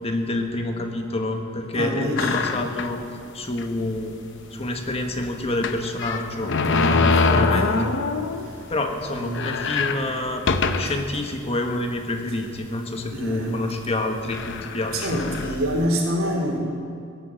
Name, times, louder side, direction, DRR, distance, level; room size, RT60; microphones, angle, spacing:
voice 1, 0.0-3.0 3.3-4.1 4.5-7.7 8.7-10.4 10.8-15.4, left 2 dB, 30° left, 4 dB, 1.4 m, -28 dB
voice 2, 1.7-2.5 6.7-8.0 9.1-9.4 13.1-13.6 14.9-16.6, equal, 75° right, -1 dB, 3.4 m, -27 dB
sound 1, 2.2-3.0 3.6-3.7 4.0-4.1 5.6-8.5 8.9-9.0 9.3-11.1 11.7-11.8 12.7-13.0 13.8-13.9 14.3-15.9, left 4 dB, 60° left, 0.8 m, -24 dB
16.5 x 10.5 x 7.7 m, 2.4 s
head